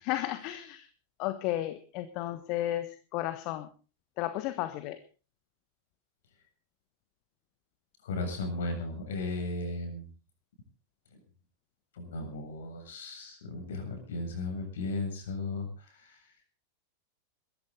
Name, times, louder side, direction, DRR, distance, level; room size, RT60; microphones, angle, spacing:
voice 1, 0.0-0.9 1.2-3.7 4.2-5.0, left 14 dB, 40° left, 12 dB, 1.3 m, -33 dB
voice 2, 8.0-10.0 11.9-16.2, left 2 dB, 60° left, 5 dB, 7.6 m, -36 dB
22.0 x 14.5 x 4.0 m, 0.36 s
figure-of-eight pair, 90°, 0 cm